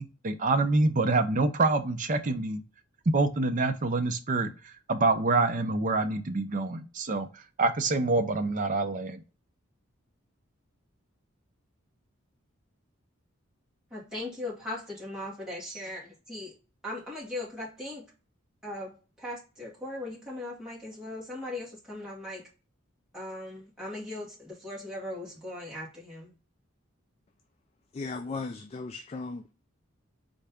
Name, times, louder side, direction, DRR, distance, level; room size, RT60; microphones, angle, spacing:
voice 1, 0.0-2.6 3.1-4.5 4.9-9.2, right 3 dB, 40° right, 0.5 m, -26 dB
voice 2, 13.9-16.5 16.8-18.1 18.6-22.4 23.1-26.3, left 1 dB, 5° right, 2.0 m, -39 dB
voice 3, 27.9-29.5, left 3 dB, 30° left, 0.3 m, -36 dB
4.0 x 3.3 x 3.4 m
head